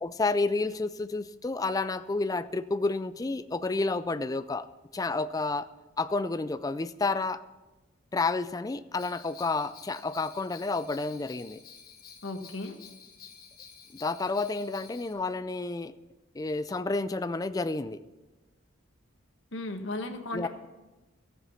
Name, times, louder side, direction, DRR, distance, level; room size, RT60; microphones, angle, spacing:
voice 1, 0.0-4.7 4.9-5.7 6.0-7.4 8.1-11.6 14.0-15.9 16.3-18.0 20.3-20.5, left 3 dB, 20° left, 13 dB, 0.3 m, -30 dB
Bell, 9.0-15.1, left 7 dB, 45° left, 1.5 m, -51 dB
voice 2, 12.2-12.8 19.5-20.5, left 2 dB, 65° left, 6 dB, 1.2 m, -35 dB
14.0 x 7.7 x 5.7 m, 1.1 s
head